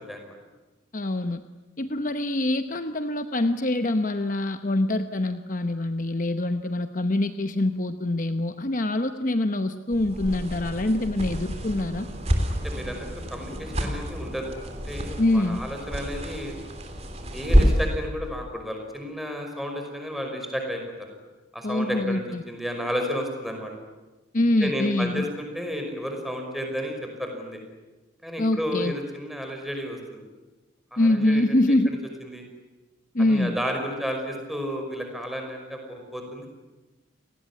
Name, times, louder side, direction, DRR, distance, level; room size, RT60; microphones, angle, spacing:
voice 1, 0.9-1.4 1.8-12.1 15.2-15.6 21.6-22.4 24.3-25.3 28.4-28.9 31.0-32.0 33.1-33.6, left 1 dB, 40° left, 9 dB, 0.9 m, -24 dB
sound 1, 9.9-18.0, equal, 35° right, 3.5 m, -27 dB
voice 2, 12.6-16.6 17.1-20.8 21.5-22.2 22.5-23.7 24.6-26.9 27.2-27.6 28.2-30.2 30.9-31.5 31.9-32.4 33.2-36.5, equal, ahead, 3 dB, 5.5 m, -32 dB
29.5 x 19.0 x 9.9 m, 1.1 s
head